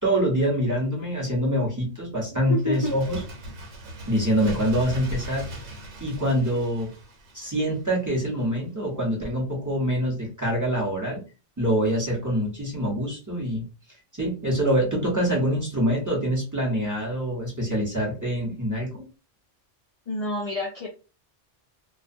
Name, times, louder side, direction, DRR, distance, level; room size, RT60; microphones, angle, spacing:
voice 1, 0.0-3.2 4.1-5.5 6.0-6.9 7.3-11.2 11.6-13.6 14.2-19.0, equal, 20° right, -4 dB, 0.8 m, -25 dB
voice 2, 2.5-2.9 20.1-20.9, left 1 dB, 65° left, -2 dB, 0.3 m, -28 dB
Bird, 2.6-8.1 8.4-8.5, equal, 75° right, 1.1 m, -39 dB
2.3 x 2.2 x 2.5 m, 0.33 s
omnidirectional pair, 1.2 m